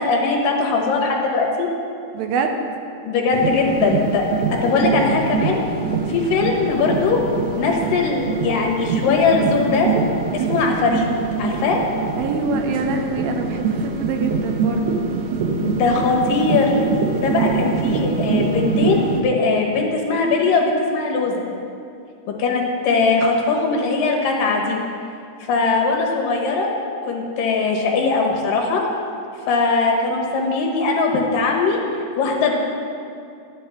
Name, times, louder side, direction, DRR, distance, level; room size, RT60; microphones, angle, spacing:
voice 1, 0.0-1.7 3.1-4.3 4.5-5.6 6.1-7.2 7.6-9.9 10.3-11.1 11.4-11.8 15.6-16.9 17.2-21.4 22.4-24.8 25.5-26.7 27.1-28.8 29.5-31.8 32.2-32.5, left 4 dB, 75° left, 0 dB, 2.9 m, -20 dB
voice 2, 2.1-2.6 12.2-15.0, right 4 dB, 90° right, 4 dB, 2.7 m, -25 dB
sound 1, 3.3-19.2, right 4 dB, 70° right, 1.9 m, -24 dB
12.5 x 10.0 x 3.5 m, 2.5 s
omnidirectional pair, 4.1 m